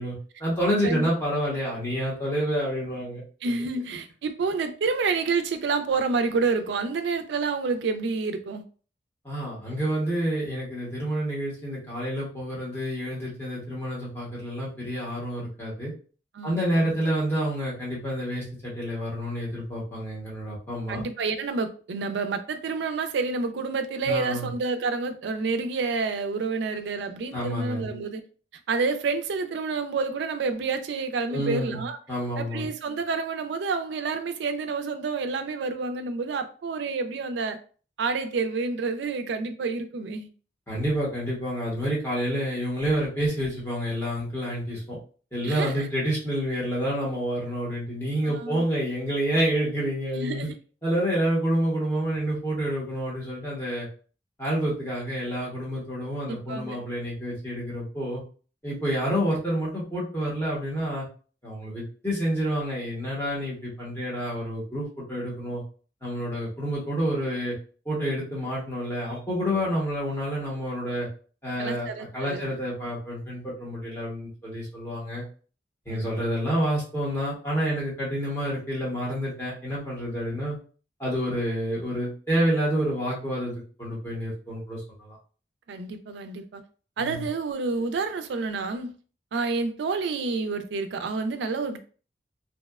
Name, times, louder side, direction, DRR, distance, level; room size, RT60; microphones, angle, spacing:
voice 1, 0.0-3.2 9.2-15.9 16.4-21.0 24.1-24.5 27.3-27.9 31.3-31.8 32.1-32.7 40.7-45.0 45.3-50.5 50.8-53.9 54.4-58.2 58.6-61.0 61.4-65.6 66.0-67.6 67.8-71.1 71.4-71.9 72.1-75.2 75.9-80.6 81.0-83.5 83.8-85.2 87.0-87.2, equal, 15° left, 0.8 m, -28 dB
voice 2, 3.4-8.6 16.3-16.9 20.9-28.2 28.7-32.0 32.4-37.6 38.0-40.3 45.4-45.9 48.2-48.6 50.1-50.5 56.3-56.8 71.6-72.5 75.9-76.1 85.7-86.6 87.0-88.9 89.3-91.8, right 4 dB, 70° right, 0.3 m, -29 dB
2.7 x 2.1 x 2.3 m
head